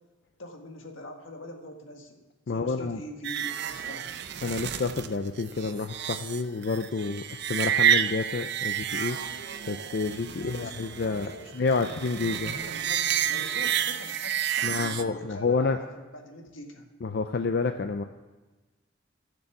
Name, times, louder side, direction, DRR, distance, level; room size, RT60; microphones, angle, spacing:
voice 1, 0.4-4.2 10.3-16.9, left 1 dB, 80° left, 3 dB, 1.7 m, -44 dB
voice 2, 2.5-3.0 4.4-9.2 9.7-12.5 14.6-15.8 17.0-18.0, left 4 dB, 55° left, 7 dB, 0.5 m, -29 dB
sound 1, 3.2-15.0, right 9 dB, 60° right, 0.6 m, -30 dB
14.0 x 6.8 x 7.1 m, 1.2 s
head